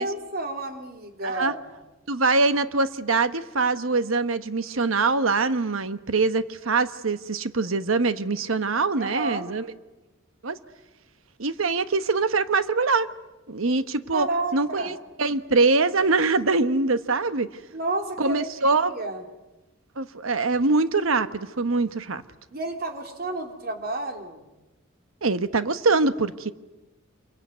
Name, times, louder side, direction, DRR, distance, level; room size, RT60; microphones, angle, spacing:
voice 1, 0.0-1.7 9.0-9.5 14.1-14.9 17.7-19.2 22.5-24.5, right 2 dB, 50° right, 4 dB, 3.5 m, -31 dB
voice 2, 2.1-9.7 10.4-10.6 11.4-13.1 13.5-17.5 18.2-19.0 20.0-22.2 25.2-26.5, right 3 dB, 90° right, 12 dB, 1.1 m, -23 dB
27.5 x 23.0 x 9.4 m, 1.1 s
head